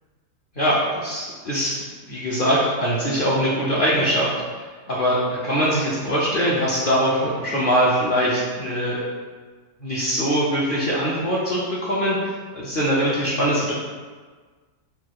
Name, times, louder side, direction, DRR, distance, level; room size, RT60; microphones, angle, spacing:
voice 1, 0.6-4.3 4.9-9.0 9.8-12.2 12.5-13.7, equal, 55° left, -7 dB, 0.6 m, -22 dB
3.9 x 2.3 x 4.6 m, 1.5 s
omnidirectional pair, 1.7 m